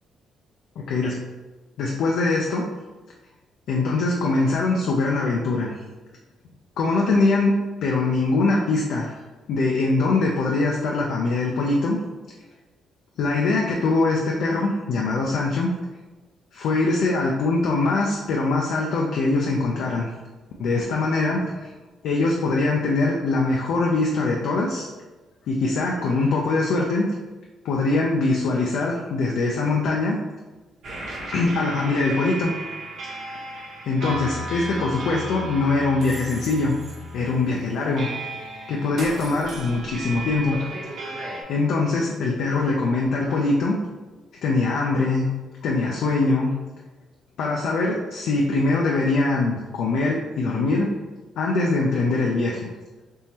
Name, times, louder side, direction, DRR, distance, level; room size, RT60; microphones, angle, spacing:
voice 1, 1.8-2.7 3.7-5.8 6.8-7.5 7.8-9.2 9.5-12.0 13.2-15.7 16.5-20.1 20.6-21.7 22.0-24.9 25.5-27.0 27.6-30.2 31.3-32.5 33.9-36.8 37.1-38.1 38.7-40.6 41.5-43.8 44.4-45.3 45.6-46.5 47.4-50.9 51.4-52.7, left 3 dB, 80° left, -1 dB, 0.4 m, -22 dB
sound 1, 30.8-41.4, right 2 dB, 65° right, 0.9 m, -35 dB
3.6 x 3.0 x 2.8 m, 1.2 s
cardioid pair, 90°, 0 cm